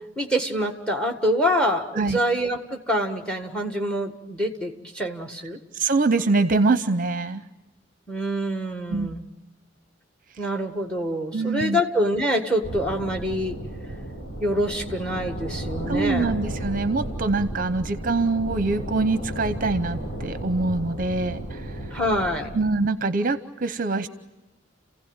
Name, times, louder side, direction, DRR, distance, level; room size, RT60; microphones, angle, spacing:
voice 1, 0.2-5.6 8.1-9.2 10.4-13.5 14.4-16.3 21.9-22.5, equal, 5° left, 5 dB, 1.7 m, -26 dB
voice 2, 5.7-7.4 8.9-9.1 11.3-11.8 15.9-21.9 22.5-24.1, right 3 dB, 45° right, 12 dB, 0.7 m, -24 dB
sound 1, 12.6-22.6, right 1 dB, 55° left, 5.7 m, -33 dB
30.0 x 16.0 x 9.0 m, 1.0 s
head